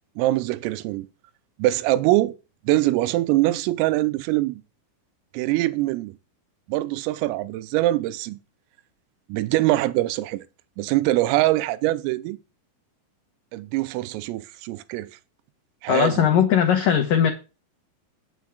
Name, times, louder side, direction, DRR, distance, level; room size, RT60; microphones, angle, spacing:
voice 1, 0.2-1.1 1.6-2.4 2.7-4.6 5.3-6.1 6.7-8.4 9.3-10.5 10.8-12.4 13.5-15.2 15.8-16.3, right 17 dB, 85° right, 3.4 m, -23 dB
voice 2, 15.9-17.3, left 8 dB, 85° left, 1.9 m, -19 dB
10.5 x 7.3 x 4.9 m
omnidirectional pair, 5.9 m